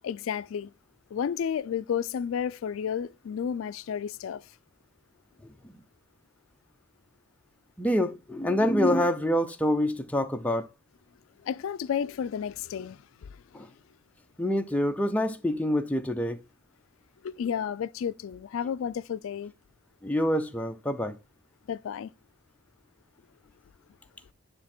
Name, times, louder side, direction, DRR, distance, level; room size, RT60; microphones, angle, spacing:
voice 1, 0.0-0.7 1.1-4.5 11.4-13.4 17.2-19.5 21.7-22.1, left 8 dB, 70° left, 0.3 m, -32 dB
voice 2, 7.8-10.7 13.5-13.7 14.4-16.4 20.0-21.2, left 1 dB, 5° left, 0.6 m, -26 dB
9.6 x 3.3 x 4.3 m
head